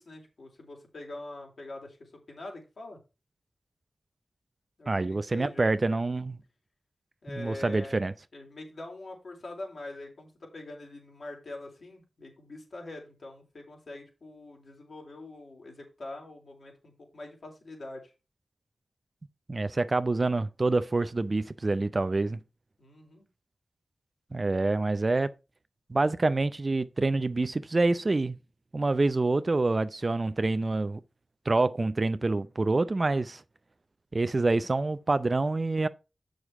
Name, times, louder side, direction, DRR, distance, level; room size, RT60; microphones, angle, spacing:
voice 1, 0.0-3.0 4.8-5.7 7.2-8.0 8.3-18.1 22.8-23.3, left 2 dB, 70° left, 3.7 m, -44 dB
voice 2, 4.9-6.4 7.3-8.1 19.5-22.4 24.3-25.3 25.9-28.4 28.7-31.0 31.5-33.4 34.1-35.9, right 2 dB, 45° right, 0.6 m, -26 dB
7.1 x 6.4 x 4.8 m
cardioid pair, 50°, 0 cm